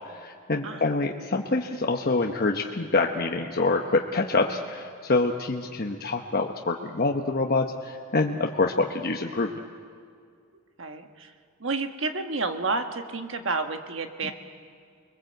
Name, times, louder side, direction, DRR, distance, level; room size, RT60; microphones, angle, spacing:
voice 1, 0.2-9.5 14.2-14.3, left 3 dB, 50° left, 1 dB, 1.0 m, -26 dB
voice 2, 10.8-11.3 11.6-14.3, right 3 dB, 65° right, 6 dB, 1.5 m, -30 dB
29.0 x 21.5 x 7.9 m, 2.2 s
head